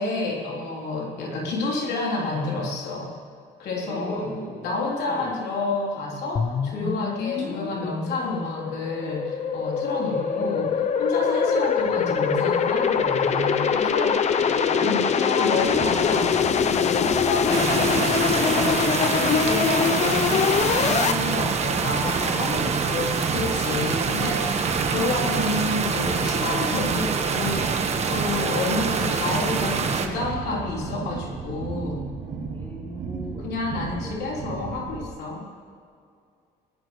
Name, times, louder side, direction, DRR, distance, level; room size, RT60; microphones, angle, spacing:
voice 1, 0.0-3.1 3.6-4.3 4.6-32.0 33.4-35.4, left 2 dB, 75° left, -3 dB, 3.5 m, -29 dB
voice 2, 1.1-1.5 3.8-4.6 5.0-5.4 7.3-7.8 10.0-10.7 11.8-12.0 14.5-15.2 32.5-33.6 34.0-34.7, equal, 15° left, -2 dB, 4.2 m, -40 dB
sound 1, 6.4-21.1, left 7 dB, 40° left, 0.7 m, -23 dB
sound 2, 15.5-35.0, right 4 dB, 75° right, 3.1 m, -36 dB
sound 3, 17.5-30.1, right 5 dB, 40° right, 1.4 m, -25 dB
20.0 x 19.0 x 3.2 m, 2.3 s
cardioid pair, 110°, 17 cm